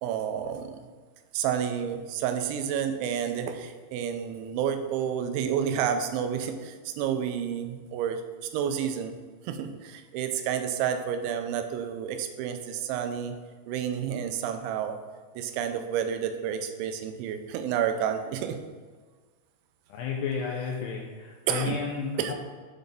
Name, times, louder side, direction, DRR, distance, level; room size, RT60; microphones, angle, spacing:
voice 1, 0.0-0.8 1.3-8.2 8.5-9.2 9.5-13.3 13.7-15.0 15.4-18.6 21.5-21.8 22.2-22.3, right 8 dB, 85° right, 7 dB, 2.9 m, -30 dB
voice 2, 19.9-22.3, left 6 dB, 85° left, 0 dB, 2.3 m, -32 dB
7.7 x 3.4 x 4.0 m, 1.5 s
omnidirectional pair, 5.2 m